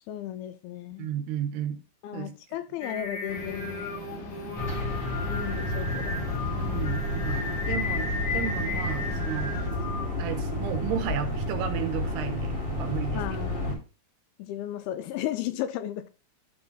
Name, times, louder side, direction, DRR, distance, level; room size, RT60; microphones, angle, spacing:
voice 1, 0.1-1.1 2.0-3.9 5.3-6.2 13.1-13.8 14.4-16.1, left 12 dB, 85° left, 2.4 m, -34 dB
voice 2, 1.0-1.8 2.1-2.3 6.6-9.6 10.2-13.4 13.7-13.8, right 10 dB, 80° right, 3.1 m, -33 dB
Singing, 2.8-10.4, left 3 dB, 45° left, 2.4 m, -35 dB
sound 1, 3.3-9.7, left 2 dB, 60° left, 3.8 m, -41 dB
sound 2, 4.6-13.7, left 1 dB, 30° left, 0.9 m, -31 dB
11.5 x 3.8 x 3.9 m
omnidirectional pair, 4.7 m